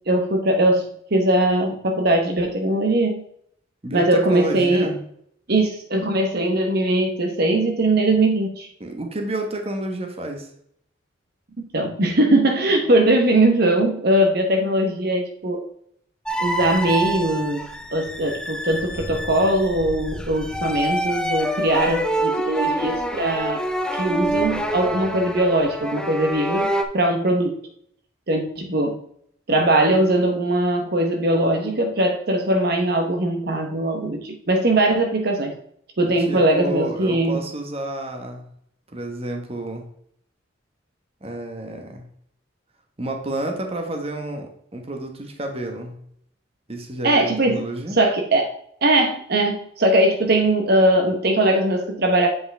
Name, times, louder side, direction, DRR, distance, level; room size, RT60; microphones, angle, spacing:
voice 1, 0.1-3.2 3.9-4.9 5.5-8.7 11.7-15.7 16.4-23.6 23.9-27.5 28.3-29.0 29.5-35.5 36.0-37.4 47.0-47.6 47.9-48.5 48.8-52.3, right 1 dB, 55° right, 3 dB, 1.0 m, -20 dB
voice 2, 3.8-5.0 8.8-10.5 36.0-38.5 38.9-39.8 41.2-42.1 43.0-45.9 46.7-48.0, right 1 dB, 30° right, 3 dB, 1.2 m, -30 dB
sound 1, 16.2-26.8, right 1 dB, 5° left, 0.6 m, -26 dB
8.1 x 5.3 x 3.4 m, 0.68 s
head